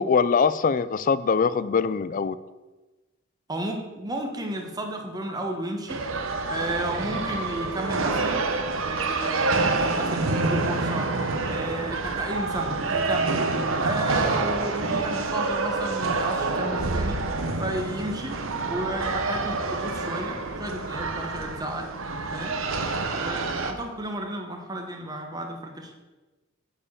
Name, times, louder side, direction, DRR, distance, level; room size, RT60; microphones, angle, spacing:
voice 1, 0.0-2.3, left 5 dB, 40° left, 15 dB, 0.4 m, -22 dB
voice 2, 3.5-6.0 6.5-8.5 8.8-11.1 11.4-13.4 13.8-17.3 17.6-21.9 22.3-22.6 23.1-25.9, right 1 dB, 20° right, 3 dB, 1.2 m, -33 dB
sound 1, 5.9-23.7, right 3 dB, 70° right, 0.9 m, -27 dB
10.0 x 4.5 x 7.1 m, 1.2 s
head